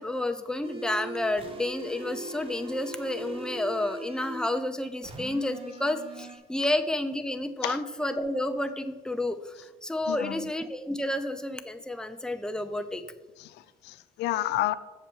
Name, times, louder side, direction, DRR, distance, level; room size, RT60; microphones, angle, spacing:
voice 1, 0.0-13.0, left 1 dB, 5° left, 8 dB, 0.6 m, -30 dB
sound 1, 0.6-4.6 5.0-6.4, right 2 dB, 35° right, 1.4 m, -41 dB
voice 2, 10.1-10.5 13.4-14.7, left 15 dB, 80° left, 14 dB, 0.5 m, -31 dB
7.3 x 6.9 x 4.5 m, 1.2 s
cardioid pair, 110°, 17 cm